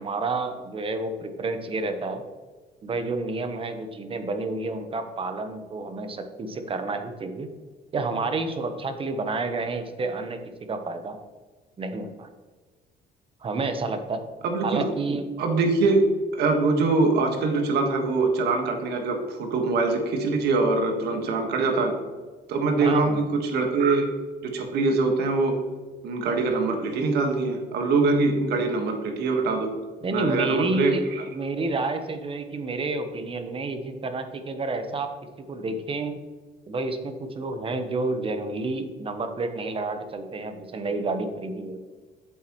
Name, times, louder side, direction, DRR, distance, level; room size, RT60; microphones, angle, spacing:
voice 1, 0.0-2.2 2.8-7.5 7.9-10.4 10.7-11.2 11.8-12.3 13.4-14.2 14.6-15.2 22.8-23.2 30.0-35.1 35.5-36.1 36.7-41.8, right 3 dB, 35° right, 7 dB, 1.0 m, -29 dB
voice 2, 14.4-14.9 15.4-16.0 16.3-22.0 22.5-24.2 24.4-25.6 26.0-29.7 30.1-31.2, right 3 dB, 75° right, 3 dB, 1.5 m, -23 dB
8.2 x 7.6 x 3.1 m, 1.4 s
cardioid pair, 110°, 17 cm